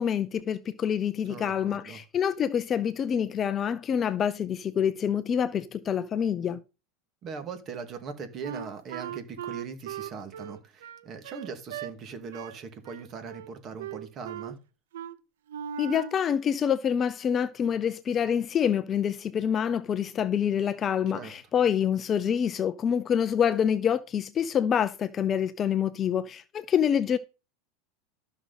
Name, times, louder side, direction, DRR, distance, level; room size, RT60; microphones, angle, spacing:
voice 1, 0.0-6.6 15.8-27.2, left 8 dB, 30° left, 0.6 m, -26 dB
voice 2, 1.3-2.0 7.2-14.6 21.1-21.3, right 5 dB, 35° right, 2.2 m, -40 dB
Wind instrument woodwind instrument, 8.4-11.9 12.3-12.6 12.8-13.5 13.8-14.6 14.9-15.2 15.5-16.2, right 9 dB, 90° right, 0.7 m, -38 dB
12.5 x 6.2 x 4.1 m
supercardioid pair, 130°, 0 cm